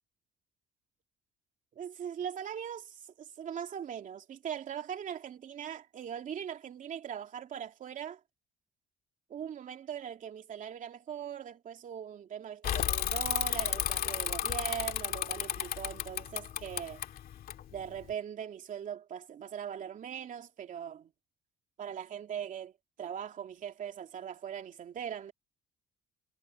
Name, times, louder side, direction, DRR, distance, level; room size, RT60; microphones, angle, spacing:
voice 1, 1.8-8.2 9.3-17.0 17.7-21.1 21.8-22.7 23.0-25.3, right 8 dB, 50° right, 2.9 m, -40 dB
Bicycle / Mechanisms, 12.6-18.1, left 10 dB, 60° left, 2.1 m, -33 dB
cardioid pair, 110°, 17 cm